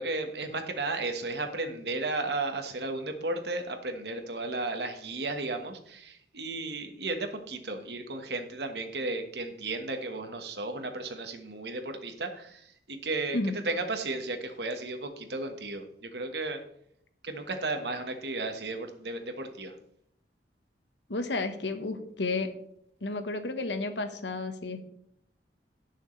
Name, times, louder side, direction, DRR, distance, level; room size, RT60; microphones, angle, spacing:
voice 1, 0.0-13.4 13.6-16.6 17.2-19.7, right 2 dB, 70° right, 6 dB, 1.4 m, -34 dB
voice 2, 21.1-22.5 23.0-24.8, left 3 dB, 85° left, 8 dB, 1.3 m, -32 dB
18.0 x 6.5 x 3.3 m, 0.71 s
head